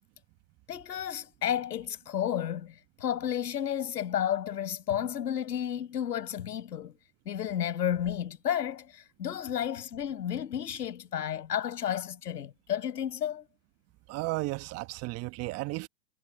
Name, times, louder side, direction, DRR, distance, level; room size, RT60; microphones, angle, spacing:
voice 1, 0.7-7.0 7.3-13.5, left 10 dB, 70° left, 6.1 m, -32 dB
voice 2, 14.1-15.9, right 21 dB, 30° right, 1.3 m, -34 dB
hypercardioid pair, 120°, 50 cm